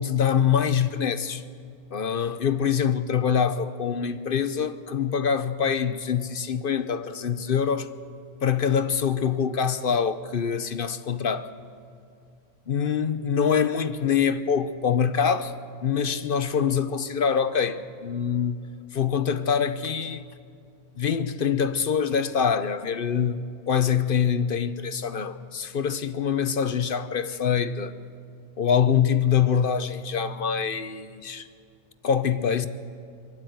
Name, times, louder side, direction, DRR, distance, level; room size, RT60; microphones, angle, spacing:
voice 1, 0.0-1.4 1.9-7.9 8.4-11.5 12.7-15.5 15.8-18.7 18.9-20.2 21.0-28.0 28.6-31.5 32.0-32.7, left 7 dB, 50° left, 0.8 m, -24 dB
24.0 x 12.0 x 9.2 m
omnidirectional pair, 1.4 m